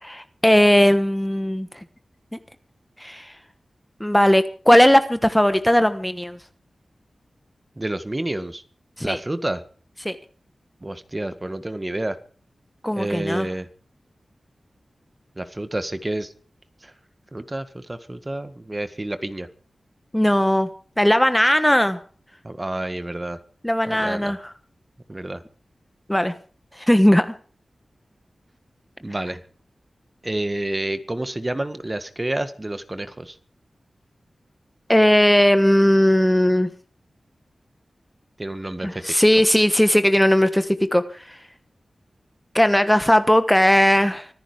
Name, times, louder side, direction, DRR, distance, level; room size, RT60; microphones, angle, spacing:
voice 1, 0.0-1.7 3.0-3.3 4.0-6.4 9.0-9.2 10.0-10.2 12.8-13.5 20.1-20.7 21.0-22.0 23.6-24.4 26.1-26.3 26.8-27.3 34.9-36.7 38.8-41.4 42.5-44.3, equal, 10° left, 11 dB, 1.2 m, -18 dB
voice 2, 7.8-8.6 9.0-9.6 10.8-12.2 12.9-13.7 15.4-16.3 16.8-16.9 17.3-19.5 22.4-23.4 23.9-24.3 25.1-25.4 29.0-29.4 30.2-33.4 38.4-39.0, right 1 dB, 30° right, 11 dB, 1.7 m, -29 dB
24.5 x 10.5 x 5.1 m, 0.42 s
cardioid pair, 45°, 0 cm